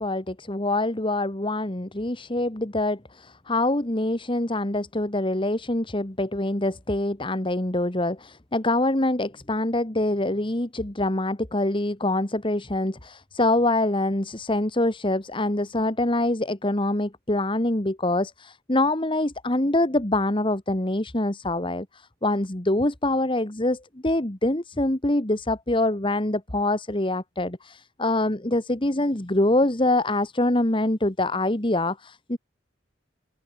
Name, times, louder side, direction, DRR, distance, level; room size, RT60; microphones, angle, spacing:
voice 1, 0.0-32.4, left 1 dB, 25° left, 1.6 m, -25 dB
open air
head